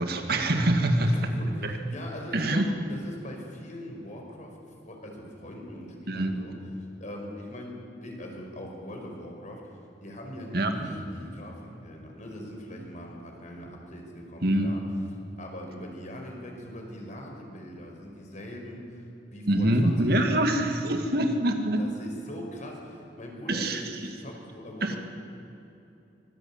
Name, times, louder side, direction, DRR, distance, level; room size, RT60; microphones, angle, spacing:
voice 1, 0.0-1.3 1.6-1.7 2.3-2.7 6.1-6.3 10.5-10.9 14.4-14.8 19.5-21.8 23.5-23.8 24.8-25.0, right 1 dB, 60° right, 5 dB, 2.1 m, -25 dB
voice 2, 1.0-4.5 4.8-6.6 7.0-14.8 15.4-19.0 19.3-20.5 21.8-25.0, equal, 45° left, 1 dB, 5.2 m, -41 dB
24.5 x 20.5 x 8.9 m, 2.9 s
head